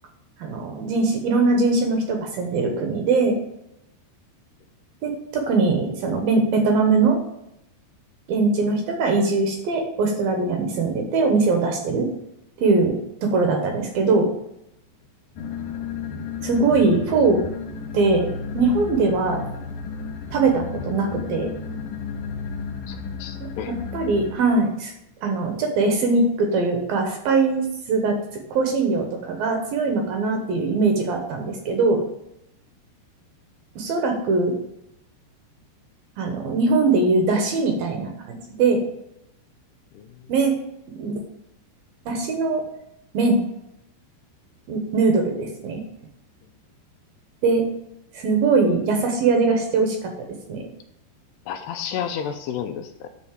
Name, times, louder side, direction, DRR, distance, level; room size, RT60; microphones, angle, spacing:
voice 1, 0.4-3.3 5.0-7.2 8.3-12.1 12.6-13.0 13.2-14.3 16.4-17.4 17.9-18.3 18.5-19.4 20.3-21.5 23.9-24.9 25.2-28.2 28.5-32.0 33.8-34.5 36.2-38.8 40.3-40.6 40.9-41.2 42.1-42.6 43.1-43.4 44.7-45.8 47.4-47.6 48.1-50.1 50.5-50.7, right 3 dB, 65° right, 3 dB, 2.6 m, -21 dB
sound 1, 15.4-24.3, left 6 dB, 65° left, 2.2 m, -33 dB
voice 2, 22.9-23.7 39.9-40.1 51.5-53.1, left 8 dB, 80° left, 7 dB, 2.6 m, -31 dB
10.5 x 4.2 x 7.3 m, 0.80 s
omnidirectional pair, 5.0 m